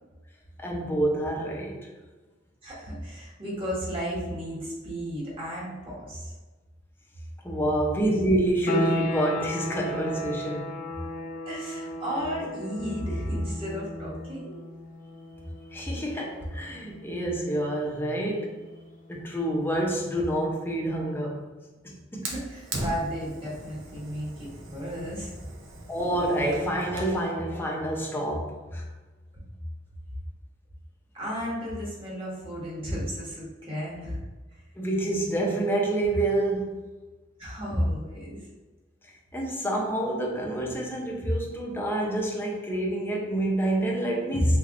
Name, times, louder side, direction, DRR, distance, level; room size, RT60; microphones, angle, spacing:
voice 1, 0.6-1.8 7.4-10.8 15.7-18.5 19.1-21.5 21.8-22.3 25.9-28.8 34.8-36.7 37.7-37.8 39.3-44.6, right 1 dB, 10° left, -1 dB, 0.7 m, -27 dB
voice 2, 2.6-6.3 11.4-14.6 22.2-25.4 31.1-34.2 34.5-34.6 37.4-38.5, equal, 30° right, -7 dB, 1.4 m, -34 dB
sound 1, 8.7-19.2, left 1 dB, 50° left, 0.4 m, -35 dB
Fire, 22.2-27.2, right 2 dB, 85° right, 0.7 m, -39 dB
3.7 x 3.3 x 2.5 m, 1.2 s
head